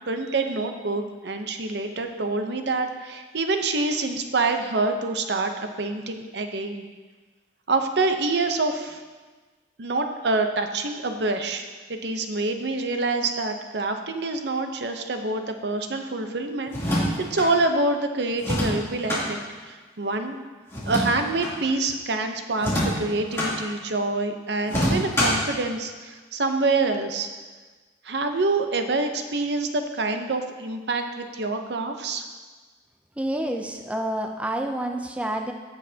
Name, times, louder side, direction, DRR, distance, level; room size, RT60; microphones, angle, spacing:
voice 1, 0.1-6.9 7.7-9.0 9.8-19.4 19.7-20.4 20.9-27.3 28.0-32.2, right 3 dB, 65° right, 6 dB, 0.8 m, -26 dB
sound 1, 16.7-17.5 18.4-19.2 20.7-21.6 22.6-23.5 24.7-25.5, equal, 15° left, 2.9 m, -25 dB
voice 2, 33.2-35.5, right 1 dB, 5° right, 3 dB, 0.4 m, -28 dB
17.0 x 6.5 x 2.8 m, 1.3 s
head